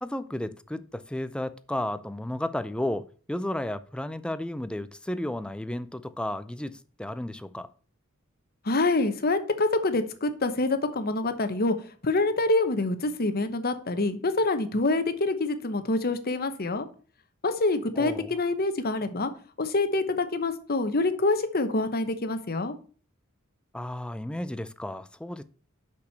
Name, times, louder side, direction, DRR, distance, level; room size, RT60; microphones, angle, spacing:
voice 1, 0.0-7.7 18.0-18.3 23.7-25.4, left 1 dB, 5° left, 0.4 m, -33 dB
voice 2, 8.6-11.8 12.0-16.9 17.4-19.3 19.6-22.7, left 2 dB, 45° left, 1.0 m, -26 dB
6.2 x 5.8 x 6.7 m
head